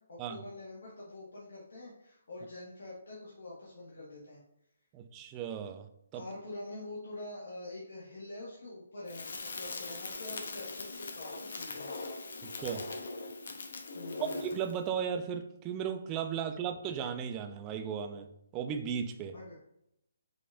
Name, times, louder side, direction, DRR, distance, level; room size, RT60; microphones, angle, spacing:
voice 1, 0.1-4.4 6.1-9.3 9.5-12.5 13.9-14.3 19.3-19.6, left 2 dB, 85° left, -7 dB, 1.4 m, -45 dB
voice 2, 4.9-5.9 6.1-6.2 12.4-12.9 14.2-19.3, right 8 dB, 15° right, 7 dB, 0.3 m, -36 dB
Crackle, 9.1-14.8, left 3 dB, 65° left, 0.7 m, -41 dB
4.9 x 2.5 x 3.3 m, 0.78 s
hypercardioid pair, 165°, 0 cm